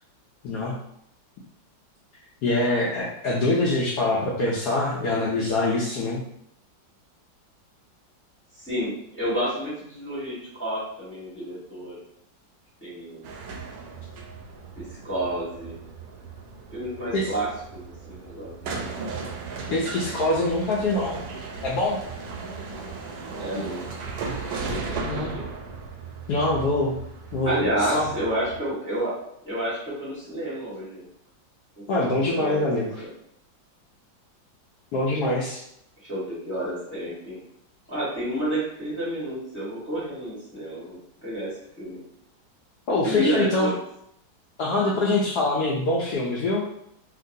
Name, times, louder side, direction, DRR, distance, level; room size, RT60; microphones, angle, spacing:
voice 1, 0.4-0.7 2.4-6.2 17.1-17.3 19.7-21.2 21.6-22.0 25.0-25.3 26.3-27.0 27.3-28.1 31.9-33.0 34.9-35.6 42.9-43.7 44.6-46.6, left 2 dB, 70° left, -5 dB, 1.0 m, -24 dB
voice 2, 8.5-12.0 12.8-13.3 14.8-15.8 16.7-18.9 23.4-23.8 24.7-25.4 27.4-29.1 29.5-31.0 31.8-32.7 33.0-33.1 36.0-37.4 37.9-42.0 43.0-43.8, right 1 dB, 10° left, -9 dB, 0.9 m, -30 dB
sound 1, 13.2-28.6, right 4 dB, 70° right, 1.0 m, -36 dB
2.9 x 2.9 x 2.6 m, 0.73 s
omnidirectional pair, 2.1 m